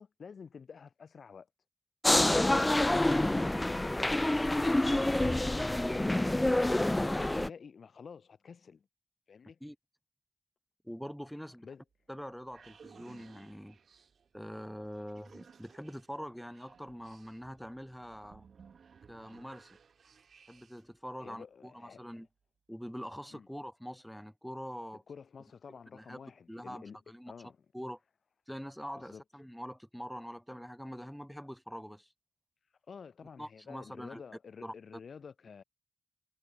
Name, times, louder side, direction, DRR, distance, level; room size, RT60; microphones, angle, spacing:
voice 1, 0.0-1.5 2.1-4.3 4.9-6.6 7.1-8.9 9.3-9.6 11.6-11.8 21.2-22.0 23.3-23.5 25.1-27.0 27.3-27.6 29.0-29.2 32.9-35.6, left 6 dB, 80° left, 3.9 m, -49 dB
sound 1, 2.0-7.5, left 1 dB, 20° left, 0.8 m, -27 dB
voice 2, 10.8-11.7 12.1-13.8 14.3-18.5 19.1-19.8 20.5-22.3 22.7-25.0 25.9-26.2 26.5-27.3 27.7-28.0 28.5-32.1 33.4-34.2 34.6-34.7, equal, ahead, 3.4 m, -44 dB
sound 2, 11.9-21.0, right 6 dB, 85° right, 8.0 m, -59 dB
cardioid pair, 65°, 0 cm